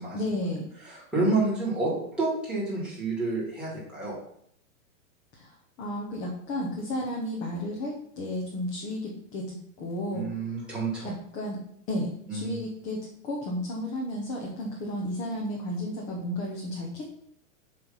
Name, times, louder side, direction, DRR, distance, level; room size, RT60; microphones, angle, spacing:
voice 1, 0.1-0.6 5.3-10.3 11.0-11.6 11.9-17.1, left 1 dB, 20° left, -1 dB, 0.7 m, -33 dB
voice 2, 0.8-4.2 10.1-11.1 12.3-12.6, right 3 dB, ahead, -6 dB, 2.3 m, -29 dB
7.8 x 3.2 x 5.5 m, 0.69 s
supercardioid pair, 170°, 40 cm